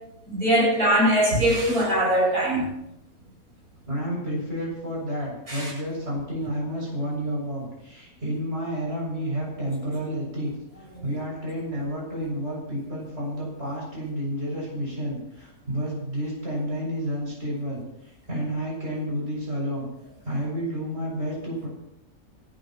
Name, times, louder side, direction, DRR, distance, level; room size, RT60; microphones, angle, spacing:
voice 1, 0.3-2.7 5.5-5.7, right 1 dB, 85° right, -4 dB, 8.3 m, -21 dB
voice 2, 3.8-10.5 11.0-19.8 20.2-21.7, equal, 45° right, -4 dB, 7.8 m, -30 dB
28.5 x 13.0 x 3.2 m, 0.82 s
omnidirectional pair, 1.5 m